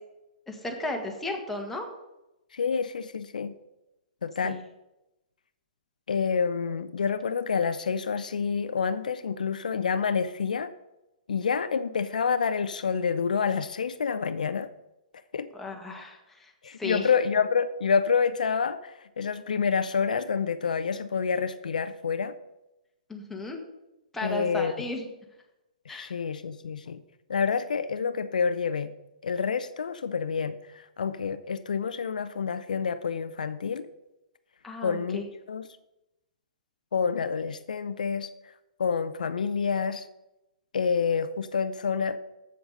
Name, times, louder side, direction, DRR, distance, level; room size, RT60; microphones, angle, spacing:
voice 1, 0.5-1.9 4.4-4.6 15.5-17.1 23.1-23.6 24.1-25.1 25.9-26.2 34.6-35.2, left 2 dB, 5° left, 1 dB, 1.7 m, -35 dB
voice 2, 2.5-3.5 4.2-4.6 6.1-10.7 11.3-14.7 15.3-15.5 16.6-22.3 24.2-24.7 25.9-27.0 27.3-28.9 29.2-33.9 34.8-35.2 35.5-35.6 36.9-38.3 38.8-40.1 40.7-42.2, left 6 dB, 80° left, 12 dB, 0.6 m, -28 dB
7.9 x 7.8 x 5.3 m, 0.94 s
hypercardioid pair, 125°, 4 cm